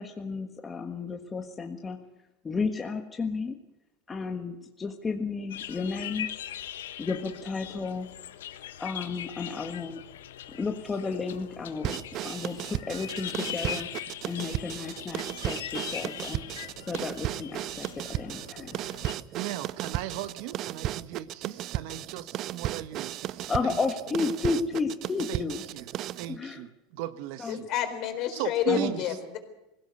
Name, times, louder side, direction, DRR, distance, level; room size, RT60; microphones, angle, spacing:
voice 1, 0.0-2.0 2.4-3.6 4.1-6.3 7.0-8.1 8.8-10.0 10.5-12.0 12.2-16.4 16.9-18.7 23.5-25.6 26.3-26.6 27.4-27.6 28.7-29.0, left 4 dB, 20° left, 4 dB, 1.6 m, -32 dB
sound 1, 5.5-19.2, left 11 dB, 85° left, 1.2 m, -41 dB
sound 2, 11.8-26.3, right 13 dB, 45° right, 0.6 m, -35 dB
voice 2, 19.3-23.8 25.3-25.9 26.2-27.7 28.3-29.0, right 14 dB, 65° right, 12 dB, 1.3 m, -37 dB
voice 3, 27.5-29.4, left 10 dB, 50° left, 6 dB, 4.2 m, -29 dB
20.0 x 16.5 x 8.2 m, 0.94 s
supercardioid pair, 115°, 0 cm